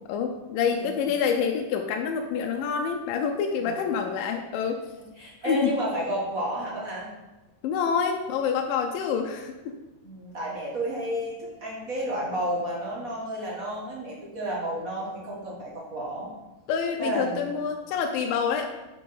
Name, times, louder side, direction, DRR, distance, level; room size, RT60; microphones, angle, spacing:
voice 1, 0.1-4.8 5.2-5.7 7.6-9.8 16.7-18.7, left 6 dB, 90° left, 3 dB, 2.3 m, -27 dB
voice 2, 5.0-7.1 10.0-16.3 17.0-17.5, right 1 dB, 45° right, -4 dB, 1.1 m, -31 dB
6.2 x 5.3 x 5.7 m, 1.1 s
omnidirectional pair, 3.9 m